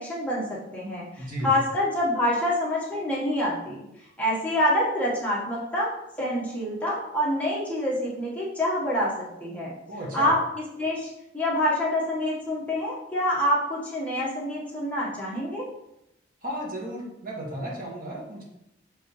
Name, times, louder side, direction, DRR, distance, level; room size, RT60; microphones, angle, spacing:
voice 1, 0.0-3.8 4.2-5.9 6.2-9.7 10.1-10.4 10.8-11.1 11.3-15.7, left 1 dB, 10° left, -7 dB, 1.6 m, -26 dB
voice 2, 1.2-1.5 9.9-10.3 16.4-18.4, right 1 dB, 50° right, -3 dB, 1.9 m, -34 dB
6.8 x 5.3 x 3.3 m, 0.85 s
head